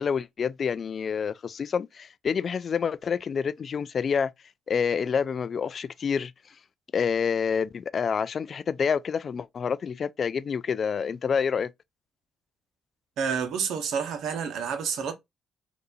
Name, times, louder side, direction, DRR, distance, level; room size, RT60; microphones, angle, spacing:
voice 1, 0.0-4.3 4.7-6.3 6.9-11.7, left 6 dB, 50° left, 0.3 m, -28 dB
voice 2, 13.2-15.1, right 6 dB, 75° right, 1.0 m, -29 dB
4.0 x 2.6 x 2.6 m
cardioid pair, 90°, 0 cm